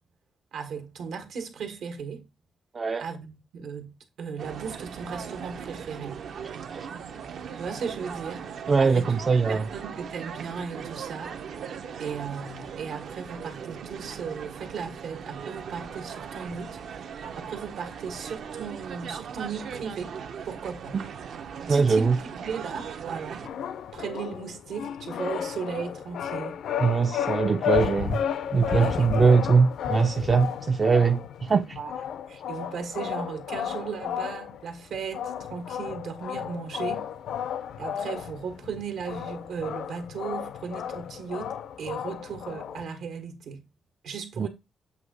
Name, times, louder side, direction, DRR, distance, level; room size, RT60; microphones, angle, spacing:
voice 1, 0.5-2.2 3.0-6.2 7.6-8.5 8.8-9.1 9.5-11.4 12.0-20.1 20.4-21.0 21.7-23.5 23.9-26.6 27.5-27.6 28.6-29.0 31.0-31.1 31.8-31.9 32.3-37.0 37.8-43.6 44.0-44.5, right 6 dB, 85° right, 1.7 m, -36 dB
sound 1, 4.4-23.5, right 7 dB, 70° right, 0.7 m, -39 dB
voice 2, 8.7-9.7 20.9-21.0 21.7-22.2 26.8-28.2 28.5-31.8 44.4-44.5, right 5 dB, 30° right, 0.3 m, -22 dB
sound 2, 23.4-42.8, left 9 dB, 80° left, 0.5 m, -33 dB
8.0 x 2.8 x 5.2 m
wide cardioid pair, 155°, 0 cm